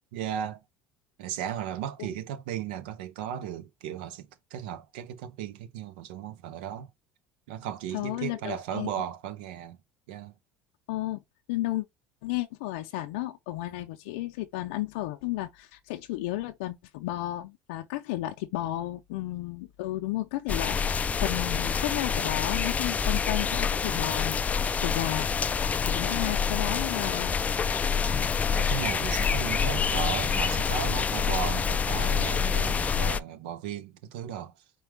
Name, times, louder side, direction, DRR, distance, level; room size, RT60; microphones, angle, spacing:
voice 1, 0.1-0.6 1.2-6.9 7.5-9.8 10.1-10.3 28.1-34.5, right 9 dB, 80° right, 0.7 m, -36 dB
voice 2, 7.9-8.9 10.9-11.2 11.5-11.9 12.2-25.3 25.8-27.3, left 16 dB, 80° left, 0.5 m, -33 dB
sound 1, 20.5-33.2, left 6 dB, 25° left, 0.3 m, -27 dB
4.6 x 2.3 x 3.3 m
hypercardioid pair, 80°, 5 cm